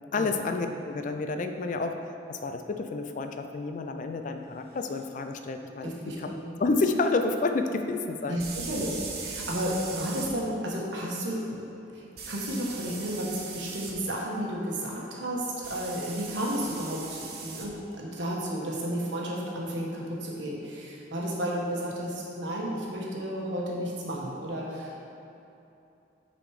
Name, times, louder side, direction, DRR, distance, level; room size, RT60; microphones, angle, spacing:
voice 1, 0.1-2.0 2.3-6.3 6.6-8.4, left 3 dB, 45° left, 6 dB, 0.4 m, -29 dB
sound 1, 4.9-5.0 8.4-10.3 12.2-13.9 15.6-17.7, right 4 dB, 55° right, 0.8 m, -39 dB
voice 2, 5.8-6.5 8.3-11.6 11.9-25.1, equal, 85° right, -3 dB, 1.2 m, -32 dB
6.5 x 4.2 x 4.8 m, 2.8 s
head